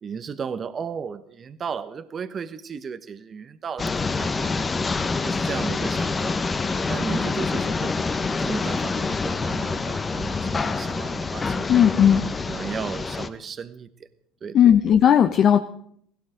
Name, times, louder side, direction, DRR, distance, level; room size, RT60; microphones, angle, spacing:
voice 1, 0.0-4.7 5.2-6.4 6.9-8.1 8.4-11.7 12.5-13.9 14.4-14.7, right 6 dB, 35° right, 12 dB, 1.1 m, -35 dB
sound 1, 3.8-13.3, left 4 dB, 25° left, 1.2 m, -26 dB
voice 2, 11.7-12.2 14.5-15.6, left 9 dB, 45° left, 8 dB, 0.9 m, -16 dB
16.5 x 16.5 x 5.1 m, 0.67 s
hypercardioid pair, 80°, 0 cm